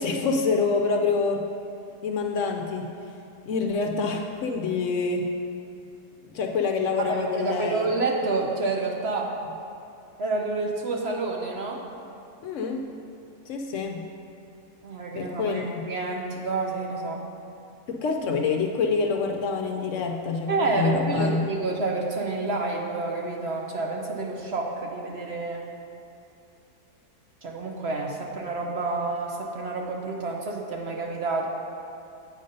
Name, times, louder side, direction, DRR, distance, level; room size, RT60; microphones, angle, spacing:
voice 1, 0.0-1.4 2.0-2.9 3.5-5.3 6.3-7.9 12.4-13.0 13.5-14.1 15.2-15.8 17.9-21.4, left 4 dB, 65° left, 2 dB, 0.8 m, -26 dB
voice 2, 7.0-9.3 10.2-11.8 14.8-17.2 20.5-25.7 27.4-31.5, right 3 dB, 55° right, 0 dB, 0.9 m, -29 dB
8.4 x 5.3 x 5.3 m, 2.7 s
omnidirectional pair, 1.6 m